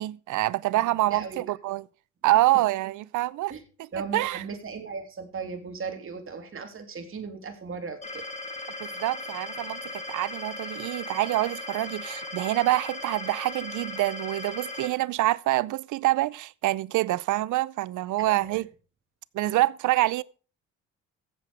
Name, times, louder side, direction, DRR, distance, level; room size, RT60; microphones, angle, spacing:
voice 1, 0.0-1.8 2.2-3.5 4.1-4.4 8.8-18.7 19.3-20.2, right 16 dB, 80° right, 0.6 m, -26 dB
voice 2, 1.1-1.4 3.5-3.6 3.9-8.2 18.2-18.6, right 5 dB, 45° right, 3.1 m, -37 dB
sound 1, 8.0-14.9, left 2 dB, 25° left, 3.3 m, -37 dB
14.5 x 7.6 x 4.9 m
cardioid pair, 90°, 30 cm